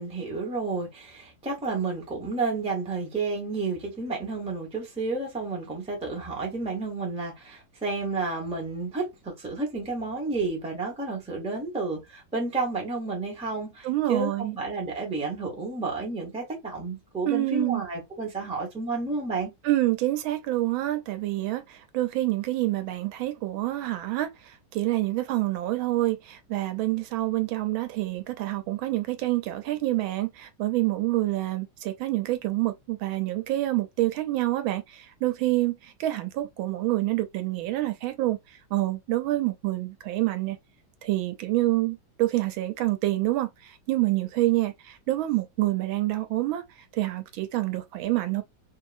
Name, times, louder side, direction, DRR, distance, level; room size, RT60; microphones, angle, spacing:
voice 1, 0.0-19.5, right 3 dB, 5° right, 0.6 m, -31 dB
voice 2, 13.8-14.6 17.3-17.8 19.6-38.4 38.7-40.6 41.0-46.6 46.9-48.4, right 17 dB, 85° right, 1.4 m, -27 dB
2.9 x 2.8 x 2.5 m
omnidirectional pair, 2.2 m